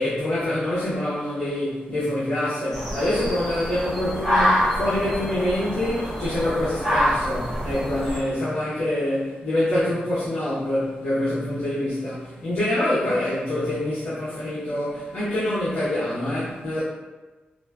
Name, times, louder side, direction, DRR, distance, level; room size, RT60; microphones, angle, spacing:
voice 1, 0.0-16.8, left 1 dB, 70° left, -12 dB, 0.9 m, -25 dB
sound 1, 2.7-8.2, equal, 15° left, 1.3 m, -26 dB
3.9 x 2.2 x 2.3 m, 1.2 s
wide cardioid pair, 175°, 3 cm